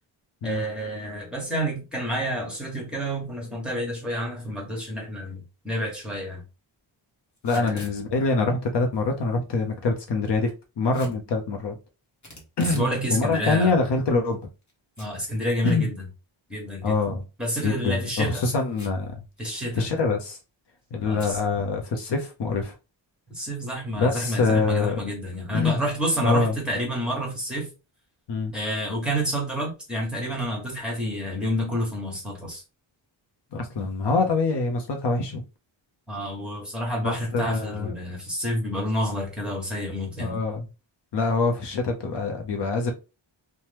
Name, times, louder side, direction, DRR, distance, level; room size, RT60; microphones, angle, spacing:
voice 1, 0.4-6.4 7.5-7.9 12.6-13.7 15.0-15.9 16.5-16.9 17.4-18.4 19.4-19.8 21.0-21.4 23.3-27.7 28.5-32.6 36.1-40.4, equal, ahead, 1.2 m, -29 dB
voice 2, 7.4-10.5 10.8-11.7 12.6-12.9 13.1-14.4 15.6-15.9 16.8-17.2 17.6-19.2 19.7-20.4 20.9-22.7 23.9-25.0 25.5-25.8 26.2-26.5 28.3-28.5 33.5-35.4 37.0-37.9 40.2-40.7 41.1-42.9, left 3 dB, 60° left, 0.7 m, -25 dB
Packing tape duct tape / Tearing, 7.4-8.0 10.9-11.2 12.2-12.9 13.3-13.4 14.1-14.7 15.0-15.1 15.5-15.6 17.5-17.8 18.7-19.1 19.4-19.5 19.7-20.1 21.2-21.4, equal, 35° left, 1.1 m, -43 dB
2.9 x 2.2 x 3.2 m
wide cardioid pair, 150°, 48 cm